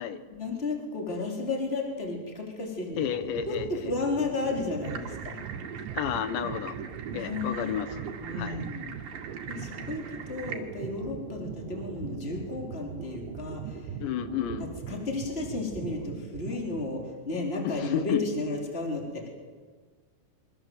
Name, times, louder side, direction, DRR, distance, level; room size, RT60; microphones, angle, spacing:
voice 1, 0.3-3.0 3.5-5.4 7.1-7.8 8.2-8.9 9.5-14.0 14.6-19.3, left 3 dB, 15° left, 1 dB, 4.1 m, -33 dB
sound 1, 2.9-17.2, right 7 dB, 85° right, 3.7 m, -40 dB
voice 2, 3.0-3.9 6.0-6.8 7.1-8.6 14.0-14.7 17.6-18.2, left 9 dB, 85° left, 11 dB, 3.7 m, -32 dB
sound 2, 4.8-10.5, right 7 dB, 55° right, 3.6 m, -42 dB
27.5 x 24.0 x 8.1 m, 1.5 s
omnidirectional pair, 5.0 m